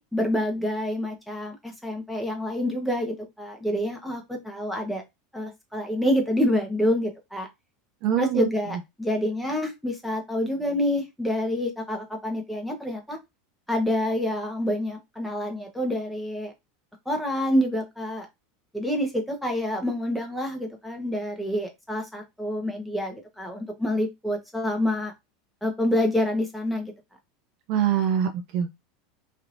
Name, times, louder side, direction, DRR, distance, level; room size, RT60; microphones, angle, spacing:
voice 1, 0.0-5.0 5.3-7.5 8.2-13.2 13.7-16.5 17.1-18.3 18.7-25.1 25.6-26.9, left 1 dB, ahead, 1.1 m, -27 dB
voice 2, 8.0-8.5 27.7-28.8, right 9 dB, 60° right, 0.6 m, -24 dB
3.2 x 2.8 x 2.6 m
supercardioid pair, 120°, 0 cm